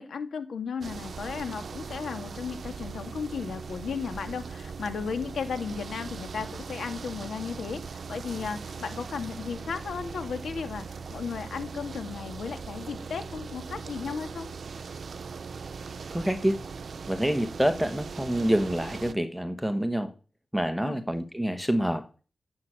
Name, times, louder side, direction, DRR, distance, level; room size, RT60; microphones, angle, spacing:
voice 1, 0.0-14.5 20.8-21.0, left 6 dB, 85° left, 2.4 m, -35 dB
sound 1, 0.8-19.1, right 5 dB, 60° right, 0.8 m, -40 dB
voice 2, 16.1-16.6 17.1-20.1 20.5-22.1, equal, ahead, 1.2 m, -27 dB
14.5 x 8.0 x 8.9 m
wide cardioid pair, 150°, 0 cm